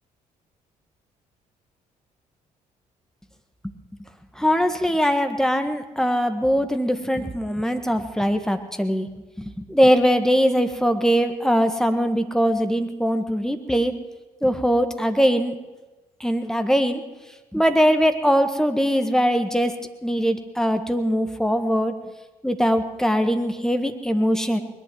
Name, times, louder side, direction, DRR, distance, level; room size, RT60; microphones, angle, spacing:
voice 1, 4.4-9.1 9.4-13.9 14.4-15.5 16.2-17.0 17.5-19.7 20.0-21.9 22.4-24.6, equal, 5° left, 7 dB, 1.6 m, -21 dB
20.5 x 11.0 x 6.1 m, 1.1 s
figure-of-eight pair, 45°, 19 cm